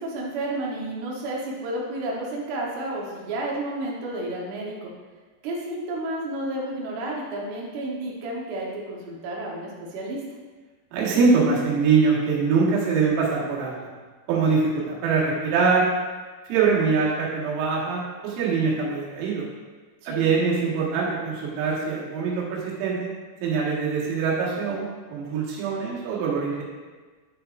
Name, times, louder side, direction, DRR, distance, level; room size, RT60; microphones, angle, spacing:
voice 1, 0.0-4.9 5.4-10.2 20.0-20.2, right 1 dB, 70° right, -3 dB, 2.8 m, -31 dB
voice 2, 10.9-13.7 14.3-15.9 16.5-19.4 20.1-23.1 23.4-26.6, right 5 dB, 90° right, -6 dB, 4.3 m, -23 dB
12.0 x 6.8 x 2.5 m, 1.4 s
omnidirectional pair, 5.8 m